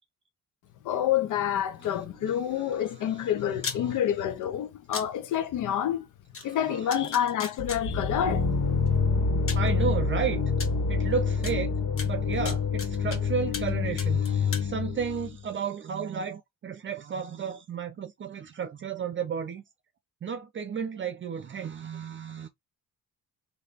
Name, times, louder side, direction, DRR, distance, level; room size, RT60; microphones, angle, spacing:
voice 1, 0.8-6.1 6.4-8.5, left 10 dB, 80° left, 0.9 m, -28 dB
sound 1, 3.6-3.8 4.9-5.1 6.3-6.4 6.9-7.8 8.9-9.0 9.5-9.7 10.6-10.7 11.4-11.5 12.0-13.2 13.5-13.7 14.0-14.7, left 5 dB, 45° left, 1.2 m, -35 dB
voice 2, 6.4-7.1 9.5-10.4 10.9-11.8 12.0-19.6 20.2-22.5, right 7 dB, 40° right, 0.6 m, -33 dB
sound 2, 7.6-15.4, left 5 dB, 65° left, 1.7 m, -27 dB
3.3 x 2.8 x 4.1 m
cardioid pair, 90°, 30 cm